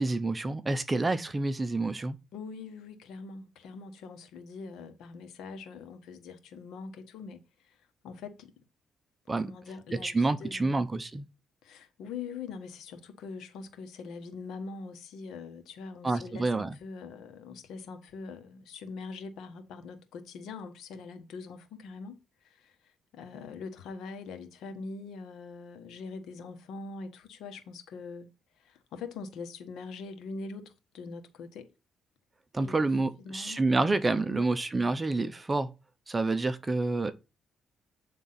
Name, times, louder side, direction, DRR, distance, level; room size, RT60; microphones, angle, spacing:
voice 1, 0.0-2.2 9.3-9.5 9.9-11.3 16.0-16.8 32.5-35.7 36.1-37.1, right 3 dB, 20° right, 0.7 m, -28 dB
voice 2, 2.3-7.8 8.0-8.5 9.4-10.7 11.6-22.2 22.4-22.8 23.1-28.3 28.6-31.7 32.6-32.8 33.2-33.6 34.3-34.5, left 4 dB, 80° left, 1.3 m, -43 dB
8.7 x 3.7 x 5.7 m
cardioid pair, 90°, 0 cm